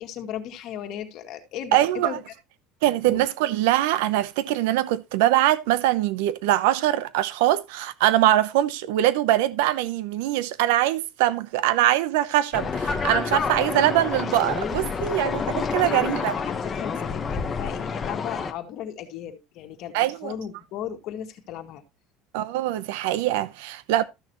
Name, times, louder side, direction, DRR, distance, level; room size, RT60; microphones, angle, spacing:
voice 1, 0.0-2.2 3.0-3.2 15.3-20.0 20.2-21.8, left 10 dB, 50° left, 2.0 m, -36 dB
voice 2, 1.7-2.2 2.8-16.3 19.9-20.3 22.3-24.0, right 13 dB, 80° right, 0.8 m, -23 dB
sound 1, 12.5-18.5, left 5 dB, 20° left, 1.2 m, -28 dB
14.0 x 6.5 x 3.1 m
cardioid pair, 150°, 0 cm